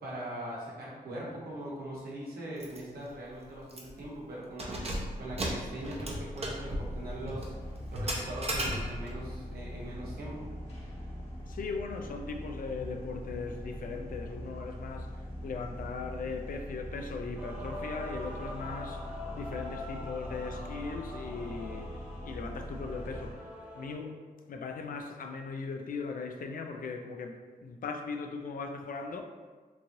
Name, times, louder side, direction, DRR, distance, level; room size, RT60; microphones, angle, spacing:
voice 1, 0.0-4.9 5.2-10.5, right 1 dB, 75° right, -5 dB, 0.9 m, -41 dB
Keys jangling, 2.6-2.8 3.1-3.2 3.7-4.0 4.5-9.2, right 1 dB, 40° right, 0.7 m, -36 dB
sound 1, 6.3-23.3, equal, 40° left, 1.0 m, -42 dB
voice 2, 11.5-23.4 23.7-24.2 24.5-29.2, left 4 dB, 60° left, 4 dB, 0.4 m, -39 dB
Male singing / Female singing / Musical instrument, 17.4-23.9, left 1 dB, 10° right, 0.9 m, -44 dB
3.0 x 2.7 x 2.6 m, 1.4 s
cardioid pair, 50°, 16 cm